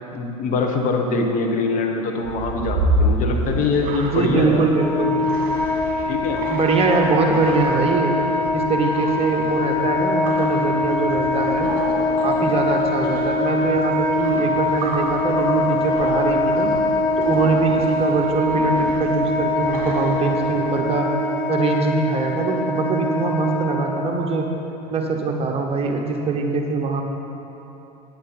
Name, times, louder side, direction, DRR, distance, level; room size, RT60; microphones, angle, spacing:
voice 1, 0.1-4.6 6.1-6.4, left 3 dB, 40° left, 2 dB, 1.1 m, -23 dB
sound 1, 2.2-20.9, right 2 dB, 45° right, 1.7 m, -30 dB
voice 2, 4.1-5.2 6.5-8.1 8.5-11.7 12.2-16.7 17.2-21.1 21.5-24.4 24.9-27.0, right 4 dB, 30° right, 2 dB, 1.1 m, -22 dB
Wind instrument woodwind instrument, 4.7-24.2, left 2 dB, 10° left, 1.0 m, -23 dB
9.4 x 8.7 x 4.4 m, 3.0 s
hypercardioid pair, 80°, 20 cm